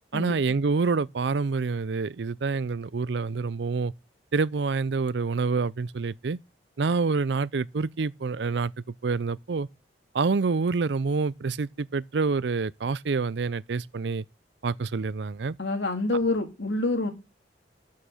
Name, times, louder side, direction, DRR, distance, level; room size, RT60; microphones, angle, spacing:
voice 1, 0.1-3.9 4.3-6.4 6.8-8.7 9.0-9.7 10.1-14.2 14.6-15.6, right 4 dB, 75° right, 0.5 m, -27 dB
voice 2, 15.6-17.1, left 2 dB, 80° left, 2.3 m, -27 dB
12.5 x 6.5 x 5.6 m
head